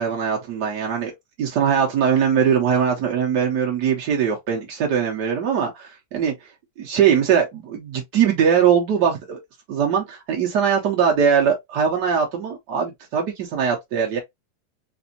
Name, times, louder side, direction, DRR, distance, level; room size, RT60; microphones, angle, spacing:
voice 1, 0.0-6.3 6.8-9.4 9.7-14.2, right 7 dB, 90° right, 1.5 m, -21 dB
4.0 x 2.6 x 2.7 m
omnidirectional pair, 1.7 m